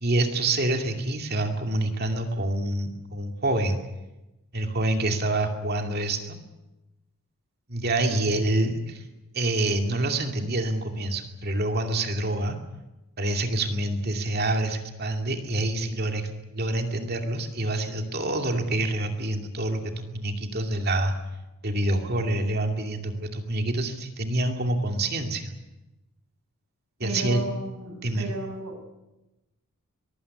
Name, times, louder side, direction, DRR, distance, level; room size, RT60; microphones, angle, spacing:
voice 1, 0.0-3.8 4.5-6.4 7.7-9.0 9.3-12.6 13.2-21.1 21.6-25.5 27.0-27.4 28.0-28.3, right 2 dB, 45° right, 4 dB, 2.5 m, -27 dB
voice 2, 27.0-28.7, right 2 dB, 85° right, 6 dB, 5.6 m, -33 dB
22.5 x 16.5 x 9.9 m, 1.0 s
head